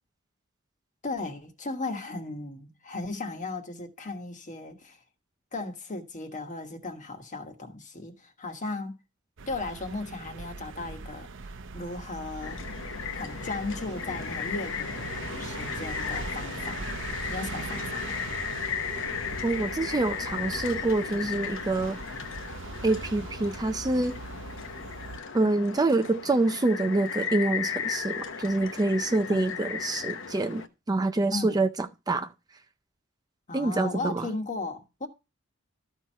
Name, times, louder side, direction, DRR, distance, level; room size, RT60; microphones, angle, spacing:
voice 1, 1.0-5.0 5.5-8.9 9.5-12.6 13.1-15.1 15.4-16.9 17.3-18.3 31.3-31.6 33.5-35.1, left 3 dB, 35° left, 1.4 m, -36 dB
sound 1, 9.4-25.2, right 4 dB, 65° right, 0.7 m, -41 dB
sound 2, 12.4-30.7, left 7 dB, 65° left, 1.0 m, -35 dB
voice 2, 19.4-22.0 22.8-24.2 25.3-32.3 33.5-34.3, right 2 dB, 20° right, 0.4 m, -26 dB
13.0 x 4.5 x 4.5 m
head